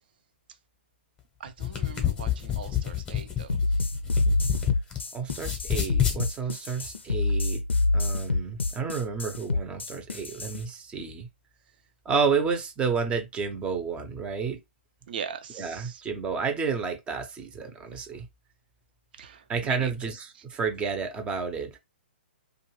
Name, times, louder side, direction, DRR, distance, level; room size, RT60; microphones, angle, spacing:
voice 1, 1.4-3.6 15.1-16.0 19.2-19.9, right 7 dB, 55° right, 0.6 m, -40 dB
sound 1, 1.5-5.0 5.3-6.2, left 10 dB, 15° left, 0.9 m, -28 dB
sound 2, 3.5-10.6, left 2 dB, 85° left, 0.5 m, -27 dB
voice 2, 5.1-7.6 7.9-11.3 12.0-14.6 15.5-18.3 19.5-21.8, right 5 dB, 15° right, 0.7 m, -30 dB
2.5 x 2.4 x 3.1 m
hypercardioid pair, 125°, 6 cm